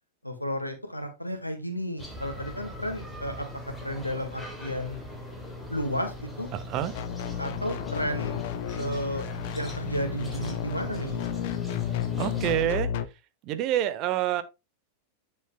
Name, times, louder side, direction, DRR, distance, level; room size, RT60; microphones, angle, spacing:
voice 1, 0.2-3.5 3.8-5.1 5.7-6.5 7.4-8.4 8.8-9.3 9.5-11.2, equal, 90° left, 1.8 m, -32 dB
sound 1, 2.0-12.7, left 1 dB, 5° left, 3.8 m, -39 dB
voice 2, 6.5-6.9 12.2-12.9 13.4-14.4, right 12 dB, 40° right, 1.2 m, -27 dB
sound 2, 6.9-13.1, left 10 dB, 50° left, 0.7 m, -33 dB
9.6 x 7.0 x 2.2 m
figure-of-eight pair, 90°, 0 cm